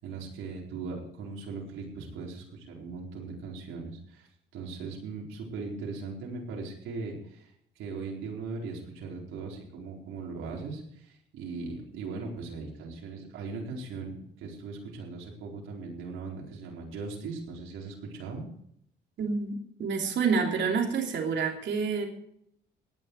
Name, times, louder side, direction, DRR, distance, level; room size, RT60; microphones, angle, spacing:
voice 1, 0.0-4.3 4.5-18.5, right 4 dB, 90° right, -1 dB, 4.4 m, -39 dB
voice 2, 19.2-19.5 19.8-22.1, right 5 dB, 65° right, 1 dB, 3.1 m, -28 dB
17.5 x 11.0 x 4.7 m, 0.70 s
cardioid pair, 90°, 20 cm